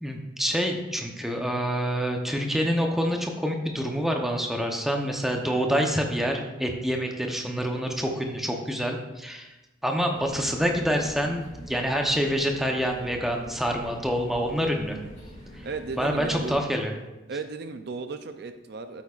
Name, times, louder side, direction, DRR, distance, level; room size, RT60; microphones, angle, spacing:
voice 1, 0.0-9.5 9.8-15.0 15.6-15.7 16.0-16.9, equal, ahead, 2 dB, 0.8 m, -27 dB
sound 1, 10.1-16.6, equal, 35° left, 2.9 m, -45 dB
voice 2, 15.6-16.7 17.3-19.0, right 4 dB, 55° right, 8 dB, 0.5 m, -35 dB
12.0 x 8.4 x 2.5 m, 1.1 s
head